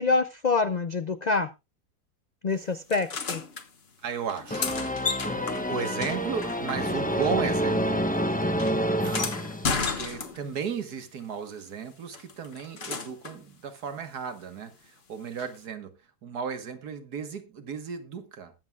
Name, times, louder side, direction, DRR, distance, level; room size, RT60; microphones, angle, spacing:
voice 1, 0.0-1.5 2.4-3.4, left 4 dB, 75° left, 0.3 m, -26 dB
sound 1, 2.9-3.7 4.3-7.2 7.5-10.7 12.1-13.4 15.4-15.5, left 5 dB, 40° left, 1.4 m, -34 dB
voice 2, 4.0-4.8 5.6-8.1 9.0-18.5, right 6 dB, 80° right, 1.9 m, -35 dB
sound 2, 4.5-10.2, equal, 5° left, 0.7 m, -28 dB
20.5 x 7.6 x 2.4 m
omnidirectional pair, 1.7 m